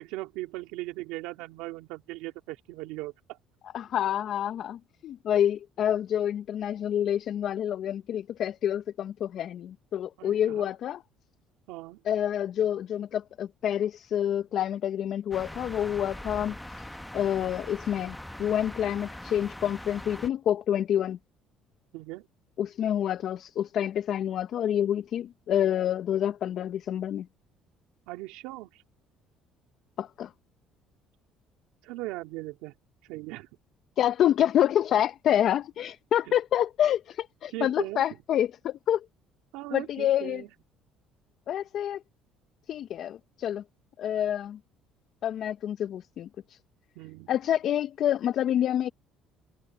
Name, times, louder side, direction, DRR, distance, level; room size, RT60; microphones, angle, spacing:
voice 1, 0.0-3.4 10.2-10.7 11.7-12.0 21.9-22.2 28.1-28.8 31.8-32.7 33.0-33.5 37.5-38.0 39.5-40.5 47.0-47.3, right 19 dB, 85° right, 2.8 m, -38 dB
voice 2, 3.7-11.0 12.1-21.2 22.6-27.3 30.0-30.3 34.0-39.0 39.7-40.4 41.5-42.0 42.7-43.6 44.0-44.6 45.2-46.6 47.3-48.9, left 10 dB, 60° left, 0.7 m, -28 dB
sound 1, 15.3-20.3, left 1 dB, 5° left, 0.9 m, -42 dB
supercardioid pair, 90°, 0 cm